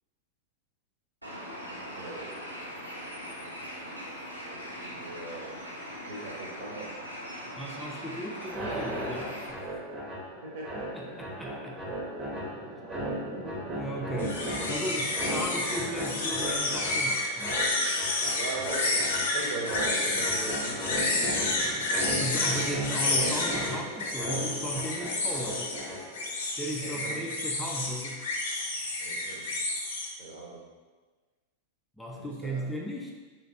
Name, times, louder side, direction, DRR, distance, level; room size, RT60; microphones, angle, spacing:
Bird, 1.2-9.5, equal, 85° right, 0.6 m, -41 dB
voice 1, 1.8-2.5 4.5-5.6 6.0-6.9 10.4-11.2 18.3-21.5 26.8-27.2 29.0-29.6 30.2-30.7 32.1-32.6, right 2 dB, 55° right, -3 dB, 0.9 m, -40 dB
voice 2, 7.5-9.6 10.9-12.0 13.7-17.6 22.2-25.7 26.6-28.3 32.0-33.2, right 1 dB, 5° left, -2 dB, 0.3 m, -36 dB
sound 1, 8.4-26.3, right 1 dB, 20° right, 0.8 m, -36 dB
sound 2, 14.2-30.1, left 2 dB, 60° left, 0.5 m, -30 dB
3.1 x 2.9 x 2.8 m, 1.3 s
figure-of-eight pair, 90°, 0 cm